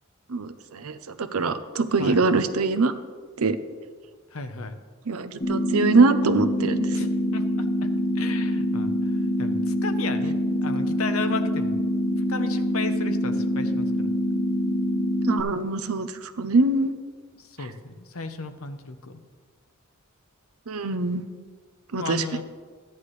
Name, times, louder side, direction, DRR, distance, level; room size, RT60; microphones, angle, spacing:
voice 1, 0.3-2.9 3.4-3.6 5.1-7.1 15.2-16.1 16.4-16.9 20.7-21.3 21.9-22.2, right 3 dB, 85° right, 11 dB, 0.7 m, -23 dB
voice 2, 4.3-4.8 6.9-7.9 8.1-11.8 12.3-14.1 17.4-19.2 22.0-22.4, left 3 dB, 70° left, 8 dB, 0.9 m, -35 dB
sound 1, 5.4-15.4, equal, 35° left, 1.2 m, -25 dB
14.5 x 10.5 x 3.2 m, 1.5 s
head